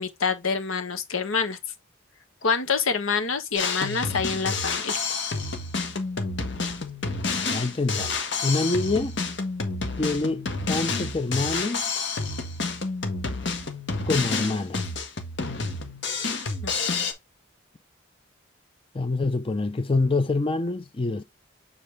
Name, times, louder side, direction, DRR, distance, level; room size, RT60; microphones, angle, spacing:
voice 1, 0.0-1.6 2.4-5.0 16.6-16.7, left 5 dB, 90° left, 1.3 m, -26 dB
Drum kit, 3.6-17.1, left 4 dB, 60° left, 1.5 m, -29 dB
voice 2, 7.5-9.2 10.0-11.9 14.0-14.8 18.9-21.2, left 3 dB, 25° left, 0.5 m, -26 dB
7.3 x 4.1 x 3.4 m
head